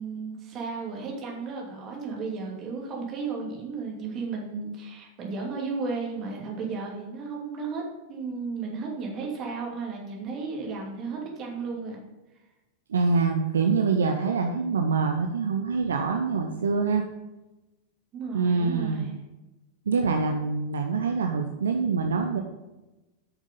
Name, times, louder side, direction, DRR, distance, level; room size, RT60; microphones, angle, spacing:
voice 1, 0.0-7.8 8.1-12.0 16.4-16.6 18.1-19.1, right 4 dB, 30° right, -1 dB, 2.6 m, -34 dB
voice 2, 12.9-17.0 18.3-19.1 19.9-22.4, right 4 dB, 65° right, 4 dB, 0.7 m, -25 dB
8.9 x 6.3 x 5.3 m, 1.0 s
figure-of-eight pair, 90°, 0 cm